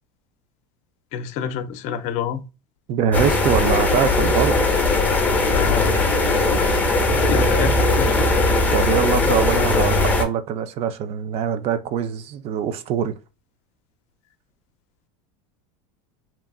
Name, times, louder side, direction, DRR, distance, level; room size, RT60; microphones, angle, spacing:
voice 1, 1.1-2.4 5.5-5.9 7.1-8.3, left 8 dB, 50° left, 0.5 m, -28 dB
voice 2, 2.9-4.7 7.3-7.7 8.7-13.2, right 8 dB, 40° right, 0.4 m, -23 dB
sound 1, 3.1-10.2, left 2 dB, 10° left, 0.6 m, -19 dB
2.9 x 2.3 x 2.3 m
supercardioid pair, 120°, 15 cm